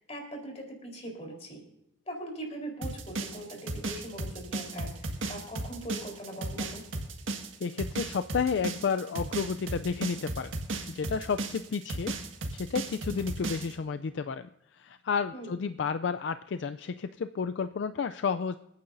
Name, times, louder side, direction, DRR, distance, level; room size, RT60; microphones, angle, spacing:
voice 1, 0.0-1.6 2.1-6.8 15.3-15.6, right 1 dB, 35° left, 1 dB, 3.9 m, -41 dB
sound 1, 2.8-13.7, right 2 dB, 85° right, 1.7 m, -35 dB
voice 2, 7.6-10.5 10.9-12.1 12.5-18.6, left 5 dB, 65° left, 10 dB, 0.4 m, -31 dB
27.5 x 9.4 x 2.6 m, 0.84 s
head